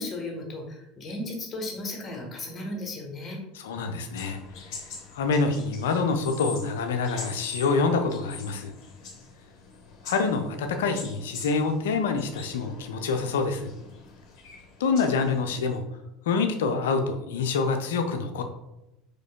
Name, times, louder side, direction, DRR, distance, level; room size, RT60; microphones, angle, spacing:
voice 1, 0.0-3.4, left 2 dB, 25° left, 1 dB, 1.2 m, -35 dB
voice 2, 3.5-4.4 5.1-8.7 10.0-13.7 14.8-15.8 16.3-18.4, left 4 dB, 65° left, 6 dB, 0.5 m, -26 dB
sound 1, 4.2-15.8, left 4 dB, 45° left, 1.0 m, -44 dB
4.9 x 4.5 x 2.2 m, 0.90 s
figure-of-eight pair, 70°, 0 cm